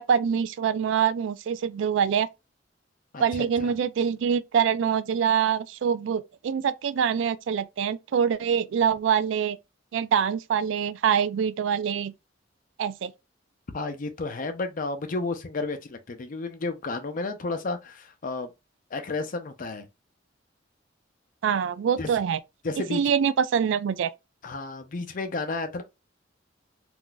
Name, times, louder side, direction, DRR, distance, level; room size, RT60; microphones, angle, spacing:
voice 1, 0.0-2.3 3.2-9.6 9.9-12.1 12.8-13.1 21.4-22.4 22.9-24.1, right 7 dB, 75° right, 0.3 m, -25 dB
voice 2, 13.7-18.5 18.9-19.9 22.0-22.1 22.6-23.0 24.4-25.8, left 3 dB, 45° left, 0.5 m, -32 dB
3.8 x 2.5 x 2.2 m
head